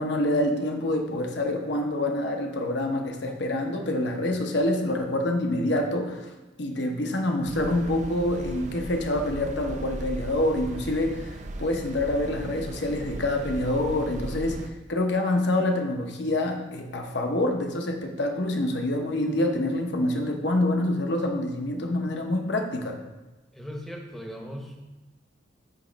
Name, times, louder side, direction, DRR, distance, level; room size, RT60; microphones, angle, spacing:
voice 1, 0.0-6.3 6.6-23.0, left 1 dB, 60° left, 3 dB, 0.8 m, -26 dB
sound 1, 7.5-14.7, right 2 dB, 35° right, 0.4 m, -37 dB
voice 2, 23.5-24.9, equal, ahead, 0 dB, 0.8 m, -38 dB
8.6 x 3.1 x 5.1 m, 1.1 s
head